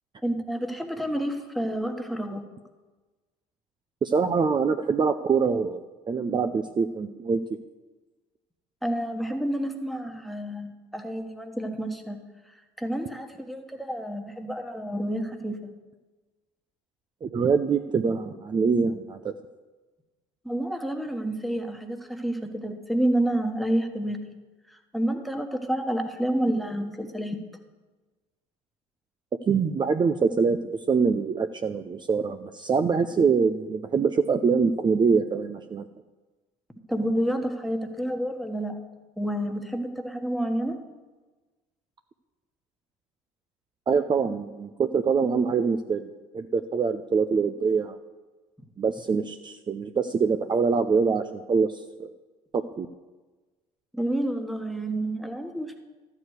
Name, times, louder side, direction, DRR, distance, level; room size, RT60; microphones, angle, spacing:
voice 1, 0.2-2.4 8.8-12.2 12.5-15.6 20.4-24.2 24.7-27.4 36.9-38.8 39.2-40.8 53.9-55.8, right 1 dB, ahead, 5 dB, 1.4 m, -29 dB
voice 2, 4.0-7.4 17.2-19.3 29.5-35.9 43.9-48.0 48.8-52.1 52.5-52.9, right 5 dB, 25° right, 7 dB, 0.6 m, -24 dB
13.0 x 4.8 x 8.0 m, 1.3 s
hypercardioid pair, 60°, 17 cm